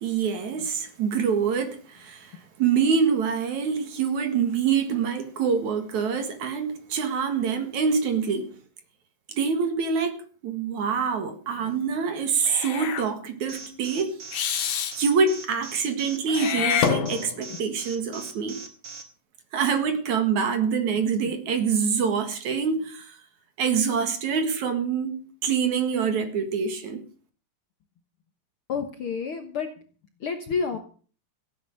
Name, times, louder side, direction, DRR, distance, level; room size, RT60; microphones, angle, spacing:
voice 1, 0.0-8.5 9.3-14.1 15.0-18.6 19.5-23.2 23.6-27.0, right 6 dB, 60° right, 2.9 m, -25 dB
Meow / Hiss, 12.4-13.1 14.3-15.0 16.3-17.5, left 8 dB, 80° left, 3.3 m, -27 dB
Alarm, 13.5-19.0, right 4 dB, 40° right, 2.4 m, -40 dB
voice 2, 28.7-29.7 30.2-30.8, left 5 dB, 60° left, 1.4 m, -30 dB
16.5 x 9.3 x 6.5 m
omnidirectional pair, 4.0 m